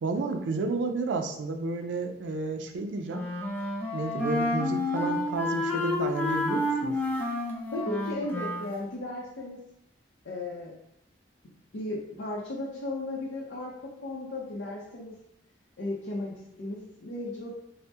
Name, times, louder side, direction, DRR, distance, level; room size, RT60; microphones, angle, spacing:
voice 1, 0.0-3.2 3.9-7.0, right 3 dB, 85° right, 6 dB, 0.4 m, -31 dB
Wind instrument woodwind instrument, 3.1-8.7, left 2 dB, 10° left, 0.4 m, -30 dB
voice 2, 7.7-9.6 10.2-10.7 11.7-15.1 15.8-17.5, left 2 dB, 85° left, -5 dB, 0.6 m, -35 dB
2.7 x 2.0 x 3.3 m, 0.77 s
head